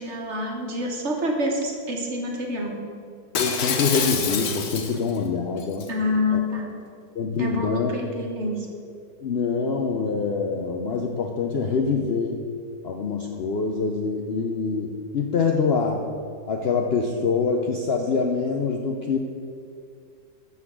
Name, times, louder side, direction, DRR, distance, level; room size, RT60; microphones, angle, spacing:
voice 1, 0.0-2.8 5.9-6.7 7.4-8.7, left 1 dB, 45° right, 1 dB, 1.4 m, -27 dB
Shatter, 3.3-5.2 5.6-5.9, left 6 dB, 65° left, 1.3 m, -26 dB
voice 2, 3.4-5.9 7.1-7.9 9.2-12.4 12.8-16.1 16.5-19.2, left 5 dB, 90° left, 2 dB, 0.5 m, -25 dB
12.0 x 4.1 x 7.4 m, 2.3 s
omnidirectional pair, 1.9 m